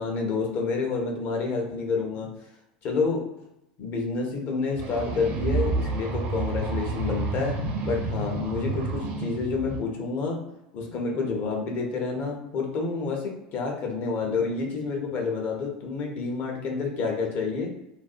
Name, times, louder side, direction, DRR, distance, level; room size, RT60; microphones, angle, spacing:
voice 1, 0.0-2.3 2.8-3.2 3.8-7.6 7.8-10.4 10.7-17.7, left 4 dB, 45° left, 1 dB, 0.7 m, -29 dB
sound 1, 4.8-9.8, right 3 dB, 45° right, 0.5 m, -29 dB
2.5 x 2.3 x 2.5 m, 0.86 s
figure-of-eight pair, 80°, 4 cm